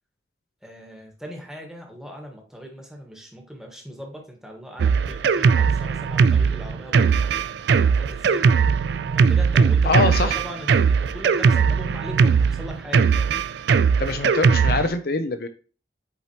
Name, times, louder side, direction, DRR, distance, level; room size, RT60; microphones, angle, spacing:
voice 1, 0.6-8.5 9.1-13.4 14.2-14.3, equal, 5° right, 1 dB, 1.3 m, -39 dB
Drum kit, 4.8-14.9, right 5 dB, 70° right, 0.3 m, -19 dB
voice 2, 9.8-10.3 14.0-15.5, left 3 dB, 55° left, 8 dB, 0.5 m, -23 dB
8.3 x 4.5 x 2.9 m, 0.38 s
head